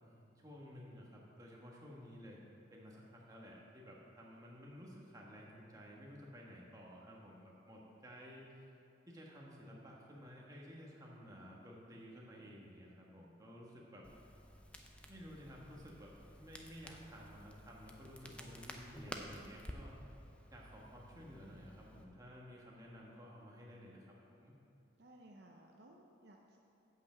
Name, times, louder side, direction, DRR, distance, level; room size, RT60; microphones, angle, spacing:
voice 1, 0.0-2.4 2.7-8.7 9.1-14.0 15.1-20.0 20.5-24.5, equal, 20° right, -3 dB, 1.3 m, -54 dB
Crackle, 14.0-22.0, left 1 dB, 5° left, 0.4 m, -53 dB
voice 2, 21.1-21.6 25.0-26.6, right 1 dB, 55° right, 0 dB, 0.7 m, -61 dB
8.0 x 5.9 x 7.4 m, 2.7 s
head